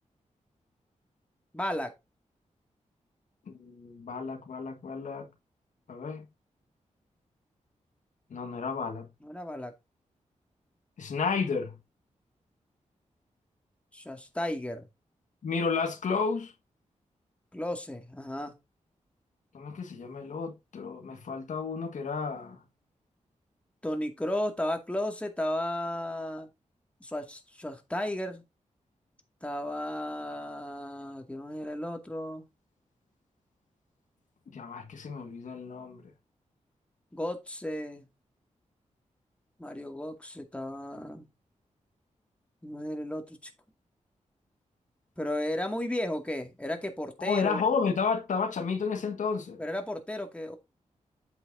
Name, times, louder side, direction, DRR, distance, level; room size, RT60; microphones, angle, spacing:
voice 1, 1.5-1.9 9.2-9.7 13.9-14.9 17.5-18.5 23.8-26.5 27.0-28.4 29.4-32.5 37.1-38.1 39.6-41.3 42.6-43.5 45.2-47.6 49.6-50.6, left 1 dB, 10° left, 2.2 m, -34 dB
voice 2, 3.5-5.3 5.9-6.2 8.3-9.1 11.0-11.7 15.4-16.5 19.5-22.6 34.5-36.0 47.2-49.6, left 5 dB, 80° left, 1.7 m, -32 dB
8.5 x 7.9 x 2.7 m
wide cardioid pair, 95°, 13 cm